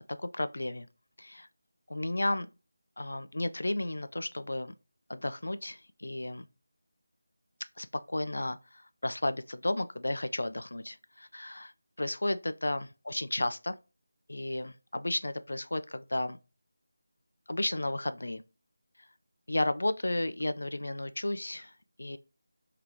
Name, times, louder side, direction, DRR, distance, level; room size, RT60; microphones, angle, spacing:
voice 1, 0.1-0.9 1.2-1.5 1.9-2.5 3.0-4.7 5.1-6.5 7.8-8.6 9.0-11.7 12.0-13.8 14.3-16.4 17.5-18.4 19.5-21.7 22.0-22.2, left 1 dB, 80° left, 0.4 m, -33 dB
3.5 x 2.8 x 3.1 m
figure-of-eight pair, 175°, 0 cm